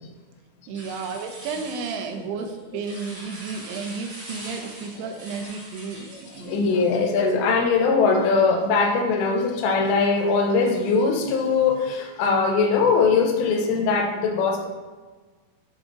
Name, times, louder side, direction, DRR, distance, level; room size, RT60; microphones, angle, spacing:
sound 1, 0.7-7.3, right 1 dB, 55° right, 1.4 m, -42 dB
voice 1, 0.7-6.9, right 5 dB, 80° right, 3 dB, 2.5 m, -33 dB
voice 2, 6.4-14.7, left 4 dB, 85° left, 3 dB, 2.9 m, -21 dB
7.6 x 3.6 x 4.9 m, 1.3 s
omnidirectional pair, 5.2 m